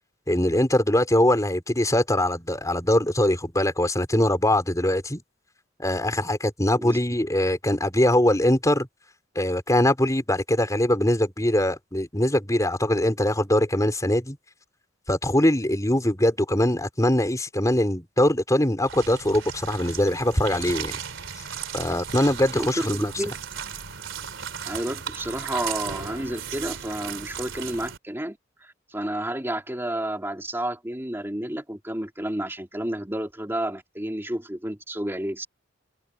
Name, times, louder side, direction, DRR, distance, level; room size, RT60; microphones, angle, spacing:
voice 1, 0.3-5.2 5.8-8.9 9.3-14.4 15.1-21.0 21.7-23.1, left 1 dB, 15° left, 4.6 m, -22 dB
sound 1, 18.8-28.0, right 7 dB, 90° right, 3.0 m, -36 dB
voice 2, 22.5-23.3 24.7-35.5, right 1 dB, 10° right, 2.5 m, -31 dB
head